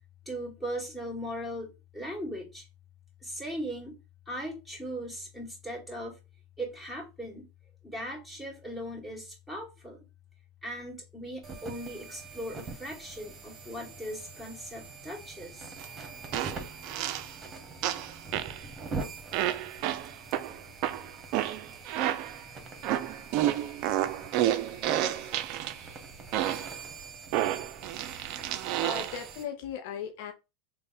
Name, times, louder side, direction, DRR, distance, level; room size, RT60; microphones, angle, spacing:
voice 1, 0.3-2.7 3.2-4.0 4.3-6.2 6.6-7.5 7.8-10.0 10.6-15.7, equal, 5° left, 2.0 m, -38 dB
sound 1, 11.4-29.4, right 4 dB, 30° right, 1.1 m, -44 dB
sound 2, 15.8-15.9 16.3-17.3 17.8-18.6 19.3-22.4 22.8-25.8 26.3-26.8 27.3-29.3, right 12 dB, 55° right, 0.3 m, -30 dB
voice 2, 28.8-30.3, left 8 dB, 65° left, 0.5 m, -37 dB
3.3 x 2.1 x 4.1 m
hypercardioid pair, 90°, 0 cm